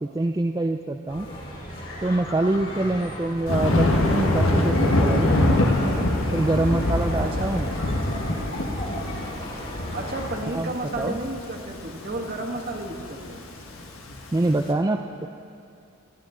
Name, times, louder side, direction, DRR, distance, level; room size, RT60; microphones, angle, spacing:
voice 1, 0.0-1.3 2.0-5.3 6.3-7.7 10.5-11.2 14.3-15.3, right 2 dB, 20° right, 3 dB, 0.4 m, -25 dB
sound 1, 1.1-10.2, left 1 dB, 65° left, 4.1 m, -36 dB
Thunder, 3.5-14.6, left 1 dB, 80° left, 1.3 m, -24 dB
voice 2, 7.2-7.5 9.9-13.4, right 2 dB, 50° right, 1 dB, 1.7 m, -32 dB
25.5 x 11.5 x 3.8 m, 2.4 s
head